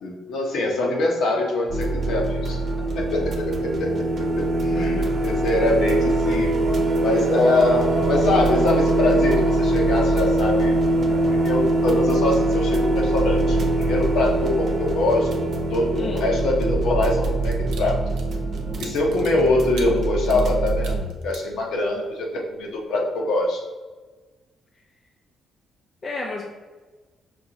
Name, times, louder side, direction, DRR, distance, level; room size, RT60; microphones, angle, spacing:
voice 1, 0.0-2.6 2.9-4.0 4.3-6.5 7.0-18.0 18.8-23.6, left 2 dB, 75° left, 0 dB, 0.9 m, -23 dB
sound 1, 1.7-21.0, right 2 dB, 55° right, 0.8 m, -23 dB
voice 2, 4.7-5.0 16.0-16.3 26.0-26.5, left 3 dB, 45° left, 0 dB, 0.5 m, -32 dB
sound 2, 17.1-22.1 22.5-22.7, right 5 dB, 85° right, 0.6 m, -43 dB
5.4 x 2.6 x 2.9 m, 1.3 s
cardioid pair, 90°, 0 cm